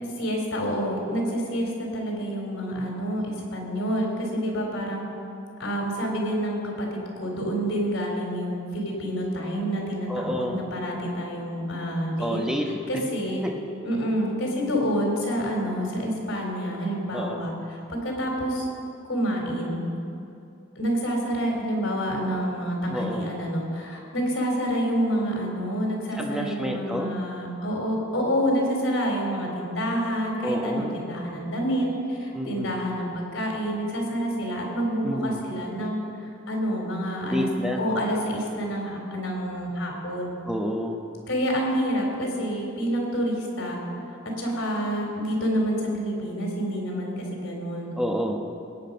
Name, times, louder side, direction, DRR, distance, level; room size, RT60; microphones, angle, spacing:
voice 1, 0.2-5.0 5.6-12.4 12.6-13.4 13.8-18.7 19.1-19.8 20.8-40.4 41.3-43.8 44.4-47.9, equal, 80° left, -1 dB, 3.7 m, -28 dB
voice 2, 10.1-10.6 12.2-12.7 13.4-13.5 17.1-17.4 22.9-23.3 26.2-27.2 30.4-31.0 32.3-32.7 35.0-35.4 37.3-37.8 40.5-41.0 48.0-48.4, equal, 5° right, 1 dB, 1.0 m, -29 dB
19.5 x 9.0 x 5.3 m, 2.7 s
head